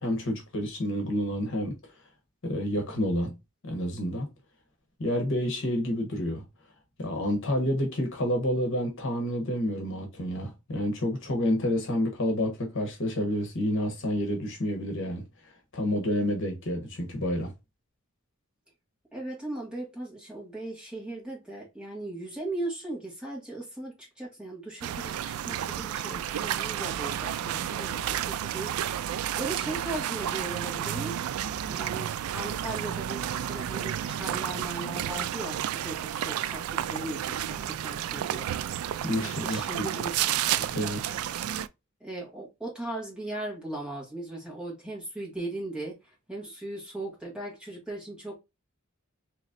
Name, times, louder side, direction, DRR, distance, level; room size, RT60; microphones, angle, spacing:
voice 1, 0.0-1.8 2.4-3.4 3.6-4.3 5.0-6.4 7.0-15.2 15.7-17.5 39.0-39.6 40.6-41.2, equal, 60° left, 1.1 m, -29 dB
voice 2, 19.1-31.2 31.7-38.5 39.4-40.4 41.3-41.4 42.0-48.4, right 2 dB, 5° right, 1.8 m, -38 dB
sound 1, 24.8-41.7, right 10 dB, 90° right, 0.3 m, -31 dB
4.0 x 3.0 x 2.5 m
head